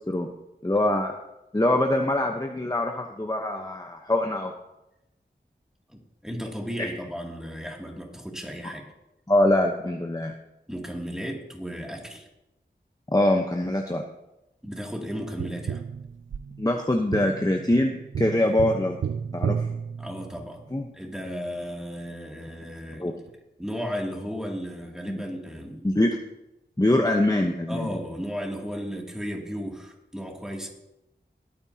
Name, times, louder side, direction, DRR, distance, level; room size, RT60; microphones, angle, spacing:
voice 1, 0.6-1.1 1.5-4.5 6.8-6.9 9.3-10.3 13.1-14.0 16.6-19.0 19.3-19.7 20.7-20.8 23.0-23.1 25.1-25.2 25.8-26.2 26.8-27.9, left 1 dB, 20° left, 2 dB, 1.0 m, -23 dB
voice 2, 5.9-8.8 10.7-12.3 14.6-15.8 20.0-20.6 20.9-23.1 23.6-25.9 27.7-30.7, equal, 5° right, -1 dB, 2.7 m, -34 dB
Tap, 15.4-20.7 23.3-23.4, right 7 dB, 85° right, 0.4 m, -33 dB
21.5 x 8.9 x 2.9 m, 0.92 s
wide cardioid pair, 45°, 19 cm